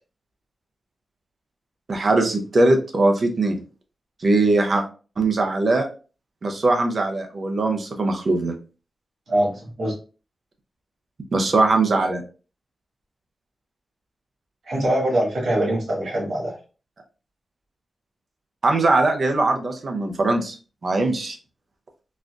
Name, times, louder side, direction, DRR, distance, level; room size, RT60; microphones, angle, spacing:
voice 1, 1.9-3.6 4.2-4.8 5.2-5.9 6.4-8.5 11.3-12.2 18.6-20.6 20.8-21.4, right 2 dB, 45° right, 3 dB, 0.6 m, -20 dB
voice 2, 9.3-9.9 14.7-16.6, right 1 dB, 90° right, -4 dB, 1.7 m, -23 dB
4.1 x 2.5 x 2.3 m, 0.35 s
wide cardioid pair, 175°, 0 cm